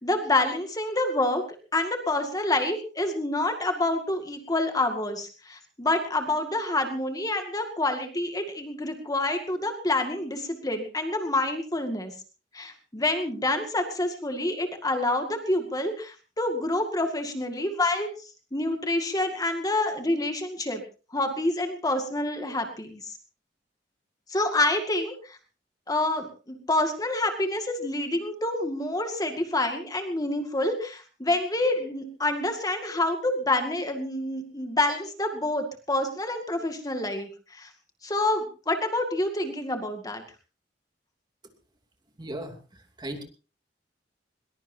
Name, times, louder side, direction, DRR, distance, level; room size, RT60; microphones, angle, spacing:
voice 1, 0.0-1.4 1.7-12.1 12.5-18.1 18.5-20.8 21.1-23.2 24.3-25.4 25.9-37.7 38.0-40.2, left 2 dB, 20° left, 5 dB, 2.1 m, -27 dB
voice 2, 42.2-42.5 43.0-43.2, right 1 dB, 25° right, 4 dB, 2.7 m, -35 dB
21.5 x 20.5 x 2.8 m, 0.35 s
head